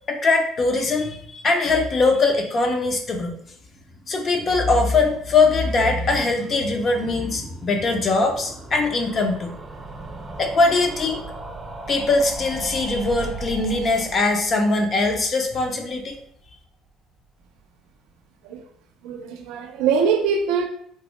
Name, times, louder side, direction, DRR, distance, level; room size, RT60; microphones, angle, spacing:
voice 1, 0.1-3.4 4.1-9.6 10.4-11.2 11.9-16.2, left 3 dB, 35° left, 4 dB, 0.5 m, -21 dB
sound 1, 3.5-16.6 16.9-17.0 17.2-17.3 17.5-17.6, right 3 dB, 20° right, 0.3 m, -39 dB
voice 2, 19.0-20.6, right 6 dB, 90° right, 5 dB, 0.4 m, -22 dB
3.4 x 2.0 x 3.0 m, 0.65 s
cardioid pair, 140°, 0 cm